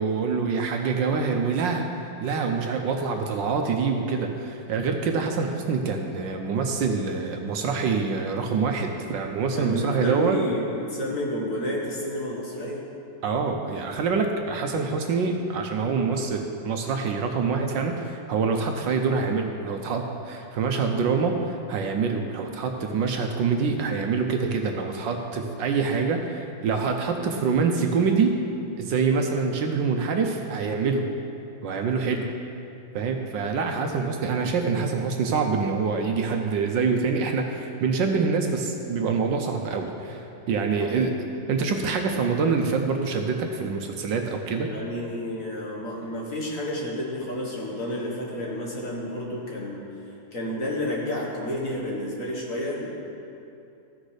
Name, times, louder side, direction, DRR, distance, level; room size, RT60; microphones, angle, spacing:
voice 1, 0.0-1.9 2.2-10.4 13.2-28.3 28.8-31.1 31.6-32.3 32.9-41.1 41.5-44.7, right 5 dB, 70° right, 3 dB, 1.3 m, -25 dB
voice 2, 9.5-12.8 40.7-41.1 44.5-49.9 50.3-52.9, left 1 dB, 45° left, -3 dB, 1.7 m, -30 dB
14.5 x 6.4 x 4.9 m, 2.7 s
omnidirectional pair, 2.2 m